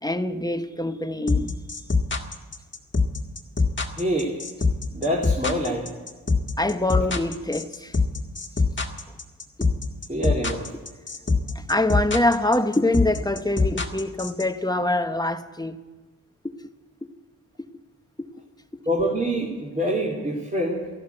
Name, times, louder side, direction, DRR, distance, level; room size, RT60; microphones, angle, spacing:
voice 1, 0.0-1.6 6.6-7.9 11.5-15.8 16.4-16.5 18.2-18.3, left 1 dB, 10° left, 1.0 m, -24 dB
sound 1, 1.3-14.4, left 4 dB, 35° left, 1.8 m, -23 dB
voice 2, 3.9-4.4 4.9-5.9 10.1-10.7 18.9-20.9, equal, 25° right, 2.6 m, -25 dB
14.5 x 12.0 x 7.9 m
cardioid pair, 55°, 34 cm